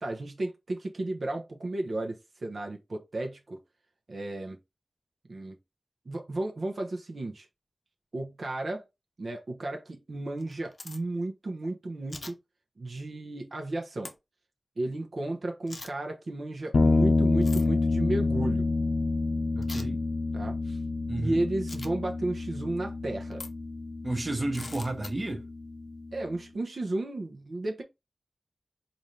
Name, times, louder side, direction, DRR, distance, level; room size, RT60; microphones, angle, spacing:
voice 1, 0.0-3.6 4.1-4.6 5.3-5.6 6.1-7.5 8.1-8.8 9.2-12.4 12.8-14.1 14.8-18.7 20.3-20.8 21.2-23.4 26.1-27.8, right 2 dB, 60° right, 0.7 m, -33 dB
sound 1, 10.4-11.0 12.1-12.3 14.0-14.1 15.7-15.9 17.4-17.7 19.6-19.9 21.7-21.9 23.3-23.5 24.5-25.1, left 2 dB, 45° left, 0.6 m, -42 dB
sound 2, 16.7-26.2, left 3 dB, 90° left, 0.6 m, -28 dB
voice 2, 19.5-20.0 21.1-21.4 24.0-25.4, right 2 dB, 30° right, 0.8 m, -31 dB
4.0 x 2.6 x 3.1 m
wide cardioid pair, 85°, 0 cm